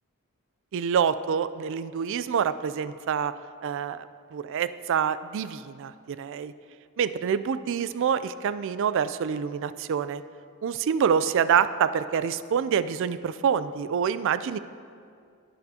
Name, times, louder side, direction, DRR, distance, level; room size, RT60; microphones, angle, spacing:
voice 1, 0.7-3.3 3.6-6.5 7.0-10.2 10.6-14.6, right 7 dB, 60° right, 14 dB, 0.3 m, -26 dB
19.0 x 6.8 x 2.8 m, 2.3 s
head